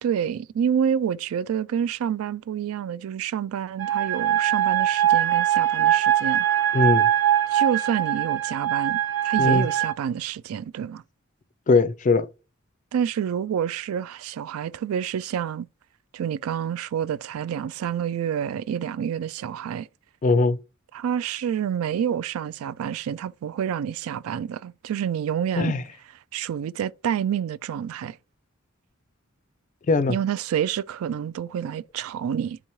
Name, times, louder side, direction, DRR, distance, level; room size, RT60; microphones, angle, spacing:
voice 1, 0.0-6.4 7.5-9.0 9.2-11.0 12.9-15.7 16.1-19.9 20.9-25.7 26.3-28.2 30.1-32.6, right 8 dB, 85° right, 0.3 m, -28 dB
sound 1, 3.8-9.9, right 11 dB, 70° right, 0.8 m, -22 dB
voice 2, 6.7-7.1 9.4-9.7 11.7-12.3 20.2-20.6 25.6-25.8 29.9-30.1, left 3 dB, 35° left, 0.4 m, -20 dB
9.9 x 3.6 x 3.1 m
head